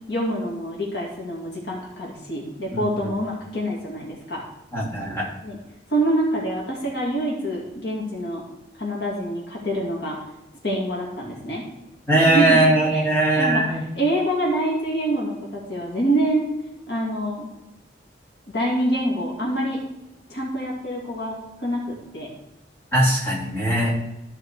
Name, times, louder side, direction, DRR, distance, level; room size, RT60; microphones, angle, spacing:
voice 1, 0.1-4.4 5.0-5.6 5.9-8.4 8.8-10.2 10.6-11.6 12.1-12.6 13.4-13.6 13.9-16.5 16.9-17.5 18.5-19.8 20.3-22.3, right 1 dB, 70° left, -2 dB, 2.4 m, -26 dB
voice 2, 4.7-5.3 12.1-13.8 22.9-23.9, right 1 dB, 15° left, -7 dB, 3.3 m, -20 dB
13.5 x 4.8 x 4.7 m, 0.89 s
head